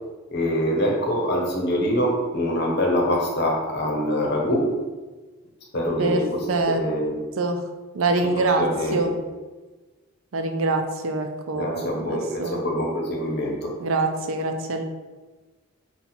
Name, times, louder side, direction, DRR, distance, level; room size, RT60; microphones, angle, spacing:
voice 1, 0.3-4.7 5.7-7.2 8.4-9.1 11.5-13.7, equal, 50° left, -1 dB, 0.9 m, -24 dB
voice 2, 6.5-6.8 7.4-7.6 7.9-8.6 8.9-9.1 10.3-12.6 13.8-14.8, right 3 dB, 80° right, 5 dB, 0.5 m, -24 dB
4.2 x 2.4 x 4.1 m, 1.3 s
head